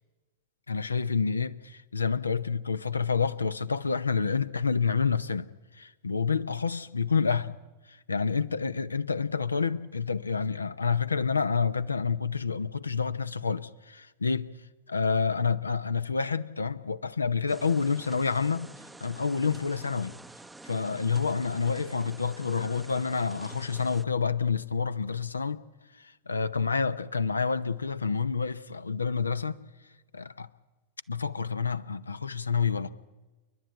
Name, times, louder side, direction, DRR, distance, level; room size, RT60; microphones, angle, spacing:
voice 1, 0.7-5.5 5.8-7.6 7.9-14.5 14.9-18.7 19.0-20.1 20.6-25.6 26.0-29.6 30.1-30.5 31.1-32.9, left 5 dB, 75° left, 0.7 m, -28 dB
sound 1, 17.5-24.0, right 2 dB, 5° right, 0.7 m, -48 dB
29.0 x 11.5 x 9.0 m
figure-of-eight pair, 90°, 0 cm